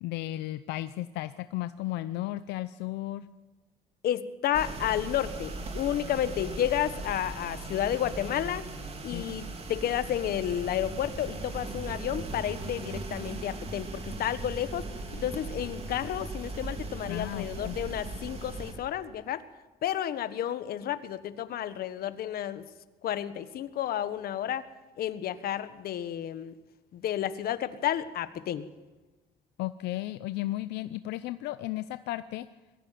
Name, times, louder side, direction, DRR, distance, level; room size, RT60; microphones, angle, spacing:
voice 1, 0.0-3.3 9.1-9.3 17.1-17.8 29.6-32.5, left 15 dB, 85° left, 12 dB, 0.7 m, -34 dB
voice 2, 4.0-8.6 9.0-19.4 19.8-22.7 23.0-24.7 25.0-26.5 26.9-28.7, left 11 dB, 65° left, 12 dB, 1.4 m, -31 dB
sound 1, 4.5-18.7, right 2 dB, 35° right, 3.8 m, -38 dB
22.0 x 15.5 x 9.3 m, 1.2 s
cardioid pair, 110°, 17 cm